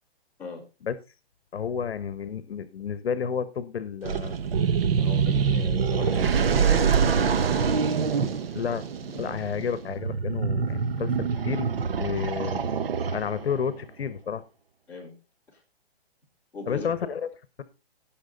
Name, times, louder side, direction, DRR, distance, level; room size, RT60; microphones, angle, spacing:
voice 1, 1.5-4.3 8.5-8.8 9.2-11.7 12.0-12.6 13.1-14.4 16.7-17.2, left 7 dB, 70° left, 15 dB, 1.1 m, -31 dB
sound 1, 4.0-13.6, right 6 dB, 65° right, 1.2 m, -25 dB
voice 2, 5.0-7.4 8.5-9.4 14.9-15.1 15.5-15.6 16.5-16.9, left 3 dB, 5° left, -8 dB, 3.5 m, -40 dB
17.5 x 6.1 x 3.9 m, 0.29 s
hypercardioid pair, 175°, 32 cm